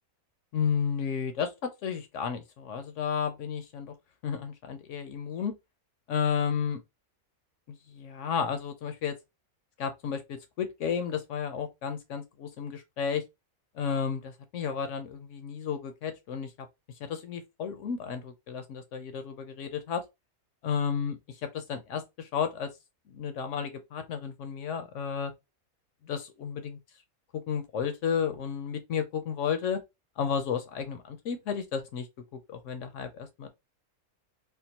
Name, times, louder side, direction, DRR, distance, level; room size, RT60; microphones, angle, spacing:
voice 1, 0.5-3.9 4.2-5.5 6.1-6.8 7.7-9.1 9.8-13.2 13.7-16.7 17.0-20.0 20.6-21.2 21.5-22.7 23.1-25.3 26.0-26.8 27.5-29.8 30.2-32.1 32.5-33.5, left 7 dB, 65° left, 0.8 m, -32 dB
3.6 x 2.3 x 2.8 m
omnidirectional pair, 1.5 m